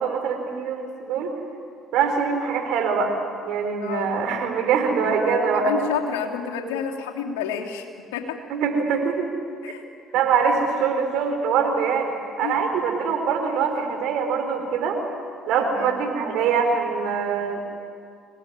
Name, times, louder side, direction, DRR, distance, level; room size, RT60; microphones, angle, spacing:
voice 1, 0.0-1.3 1.9-3.1 3.5-5.7 8.5-9.3 10.1-15.0 15.5-17.6, right 6 dB, 70° right, 4 dB, 4.6 m, -23 dB
voice 2, 3.8-4.1 5.5-8.4 9.6-9.9 10.1-10.2 12.4-12.6 15.6-16.0, left 7 dB, 85° left, 1 dB, 3.0 m, -30 dB
26.0 x 19.5 x 9.8 m, 2.3 s
hypercardioid pair, 60°, 0 cm